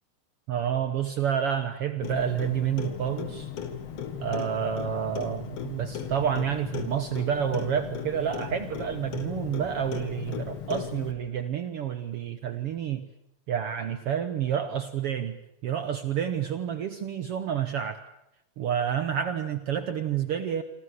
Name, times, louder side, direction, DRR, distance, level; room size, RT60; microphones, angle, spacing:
voice 1, 0.5-3.5 4.2-13.1 13.5-18.0 18.6-20.6, right 9 dB, 60° right, 11 dB, 1.6 m, -29 dB
Clock, 2.0-11.1, left 7 dB, 55° left, 2.9 m, -36 dB
27.5 x 25.5 x 6.7 m, 0.83 s
omnidirectional pair, 3.6 m